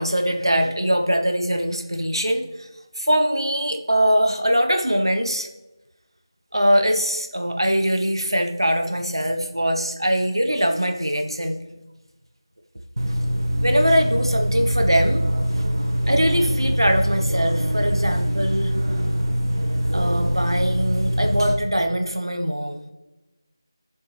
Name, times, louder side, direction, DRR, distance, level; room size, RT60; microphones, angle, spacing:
voice 1, 0.0-2.7 3.0-5.5 6.5-11.6 13.3-15.2 15.6-15.7 16.1-18.7 19.9-22.9, equal, 85° right, 5 dB, 1.3 m, -22 dB
sound 1, 13.0-21.5, equal, 70° right, 1.7 m, -23 dB
15.0 x 7.3 x 3.5 m, 1.1 s
figure-of-eight pair, 165°, 2 cm